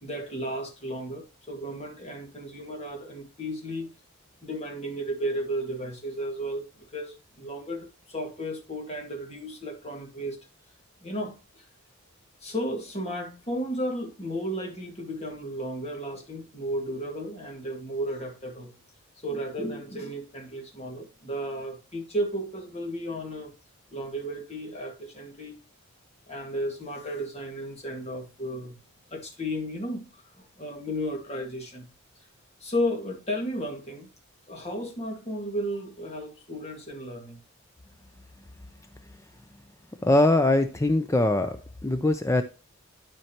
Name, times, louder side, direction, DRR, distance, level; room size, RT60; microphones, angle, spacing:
voice 1, 0.0-3.9 4.4-10.4 11.0-11.7 12.4-18.7 19.2-23.5 23.9-25.6 26.3-28.8 29.1-31.9 32.6-34.1 34.5-37.4, equal, 30° left, 1.9 m, -34 dB
voice 2, 40.0-42.4, left 2 dB, 15° left, 0.4 m, -22 dB
12.0 x 4.5 x 2.9 m
head